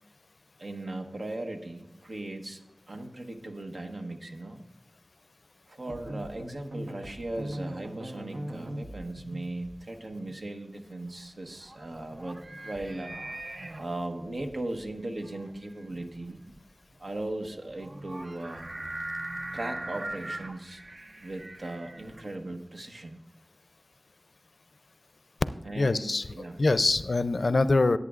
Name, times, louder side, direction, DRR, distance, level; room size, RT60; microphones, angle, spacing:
voice 1, 0.6-2.6 2.9-4.6 5.7-13.1 13.8-16.4 17.0-18.7 19.5-20.8 21.2-23.2 25.6-26.6, right 2 dB, 70° right, 3 dB, 1.2 m, -38 dB
sound 1, 5.9-10.5, right 1 dB, 90° right, 1.0 m, -40 dB
sound 2, 11.1-22.6, right 1 dB, 50° right, 0.7 m, -41 dB
voice 2, 25.8-26.3 26.6-28.0, left 3 dB, 70° left, 13 dB, 0.4 m, -24 dB
17.5 x 8.4 x 2.5 m, 0.94 s
wide cardioid pair, 60°, 0 cm